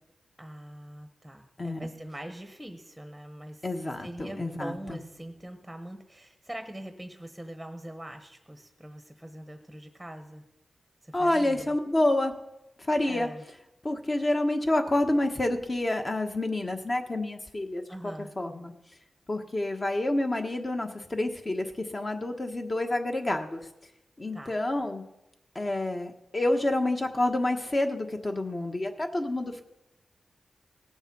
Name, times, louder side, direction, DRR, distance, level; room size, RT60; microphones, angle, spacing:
voice 1, 0.4-3.7 4.0-10.4 11.0-11.7 13.0-13.4 17.9-18.3 24.3-24.6, right 1 dB, 5° right, 6 dB, 1.0 m, -42 dB
voice 2, 1.6-1.9 3.6-5.0 11.1-12.3 12.8-13.3 13.8-18.7 19.3-23.6 24.2-25.0 25.5-29.6, left 1 dB, 30° left, 5 dB, 1.3 m, -28 dB
18.0 x 7.1 x 5.5 m, 0.91 s
wide cardioid pair, 85°, 0 cm